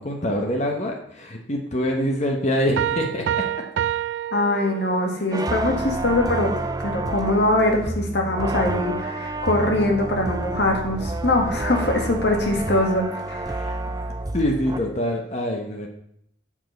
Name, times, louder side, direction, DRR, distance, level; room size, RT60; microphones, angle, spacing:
voice 1, 0.0-3.4 13.5-13.8 14.3-15.9, equal, 40° left, 2 dB, 1.0 m, -25 dB
sound 1, 2.8-5.3, right 10 dB, 80° right, 0.3 m, -27 dB
voice 2, 4.3-6.5 6.8-13.5, left 1 dB, 65° left, 1 dB, 1.8 m, -22 dB
sound 2, 5.3-14.8, right 2 dB, 20° right, 0.4 m, -29 dB
7.4 x 6.2 x 5.2 m, 0.71 s
head